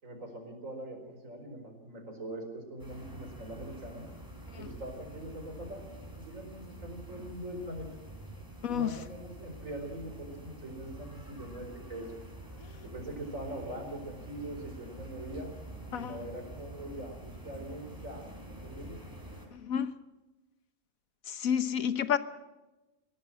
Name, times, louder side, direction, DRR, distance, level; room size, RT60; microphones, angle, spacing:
voice 1, 0.0-4.0 4.6-7.9 8.7-12.1 12.8-15.5 15.9-18.2 18.6-19.0, right 1 dB, 70° right, 4 dB, 5.1 m, -42 dB
sound 1, 2.8-19.5, right 1 dB, 15° right, 5.0 m, -47 dB
voice 2, 19.5-19.9 21.3-22.2, left 8 dB, 85° left, 13 dB, 1.5 m, -30 dB
22.5 x 17.0 x 7.7 m, 1.1 s
omnidirectional pair, 1.4 m